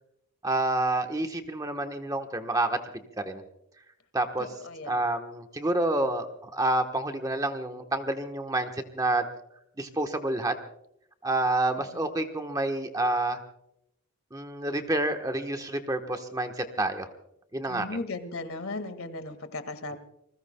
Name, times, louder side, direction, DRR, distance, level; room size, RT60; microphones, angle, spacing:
voice 1, 0.4-3.4 4.1-4.5 4.8-9.3 9.8-10.5 11.2-13.4 14.3-17.1 17.5-18.0, right 2 dB, 15° right, 5 dB, 1.1 m, -28 dB
voice 2, 4.6-5.0 11.9-12.1 17.7-20.0, left 2 dB, 70° left, 9 dB, 1.9 m, -36 dB
29.5 x 20.5 x 2.2 m, 0.79 s
head